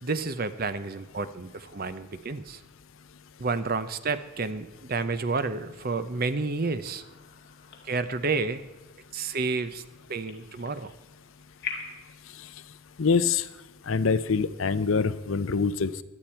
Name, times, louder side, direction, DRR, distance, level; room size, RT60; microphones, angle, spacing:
voice 1, 0.0-2.6 3.4-7.0 7.8-8.6 9.1-9.8 10.1-10.9, right 4 dB, 45° right, 12 dB, 0.7 m, -30 dB
sound 1, 6.8-12.1, left 6 dB, 50° left, 2.0 m, -44 dB
voice 2, 13.0-13.4 13.9-16.0, left 5 dB, 70° left, 14 dB, 0.6 m, -25 dB
17.0 x 12.0 x 4.5 m, 1.1 s
head